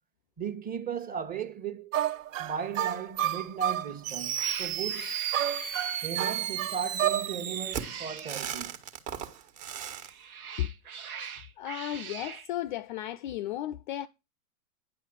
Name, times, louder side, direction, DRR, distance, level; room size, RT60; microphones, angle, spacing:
voice 1, 0.4-2.0 2.4-5.1 6.0-8.7, right 7 dB, 20° right, 1.1 m, -36 dB
sound 1, 1.9-3.9 5.3-7.3, right 11 dB, 65° right, 0.7 m, -30 dB
Cat, 3.7-3.9 4.3-6.4 7.5-8.6 9.9-12.5, right 7 dB, 80° right, 1.5 m, -43 dB
Fireworks, 4.0-10.1, right 9 dB, 40° right, 1.5 m, -34 dB
voice 2, 11.6-14.1, left 13 dB, 40° left, 0.4 m, -34 dB
9.8 x 5.6 x 4.9 m
hypercardioid pair, 110°, 43 cm